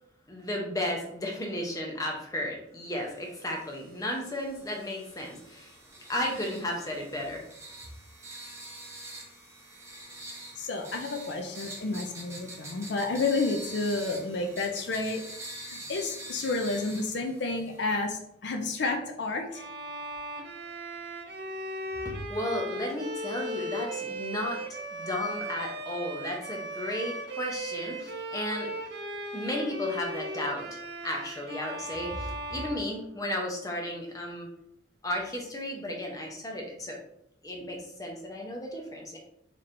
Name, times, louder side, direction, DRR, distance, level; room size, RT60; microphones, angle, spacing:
voice 1, 0.3-5.8 6.1-7.4 22.0-24.6 24.9-28.7 29.3-34.5 35.0-37.0 37.4-39.2, left 1 dB, 20° left, 0 dB, 0.7 m, -34 dB
sound 1, 3.1-18.0, right 1 dB, 15° right, 0.7 m, -45 dB
voice 2, 10.6-15.2 15.6-19.7, left 3 dB, 65° left, 3 dB, 0.5 m, -30 dB
Bowed string instrument, 19.5-33.6, right 1 dB, 55° right, 0.5 m, -38 dB
4.2 x 3.2 x 2.6 m, 0.75 s
head